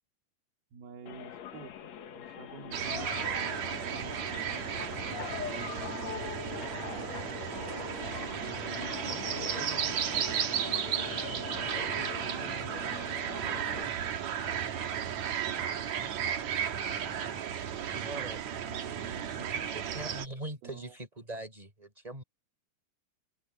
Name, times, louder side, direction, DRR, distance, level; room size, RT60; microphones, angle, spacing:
voice 1, 0.7-1.8 2.1-4.5 5.0-7.2 8.0-11.6 12.0-15.7 17.7-18.2 18.6-20.4 20.6-21.0, right 6 dB, 90° right, 5.1 m, -49 dB
sound 1, 1.1-13.9, left 9 dB, 55° left, 2.3 m, -42 dB
sound 2, 2.7-20.3, right 9 dB, 55° right, 2.6 m, -34 dB
voice 2, 18.0-18.4 19.4-22.2, right 1 dB, 10° right, 5.1 m, -42 dB
omnidirectional pair, 4.3 m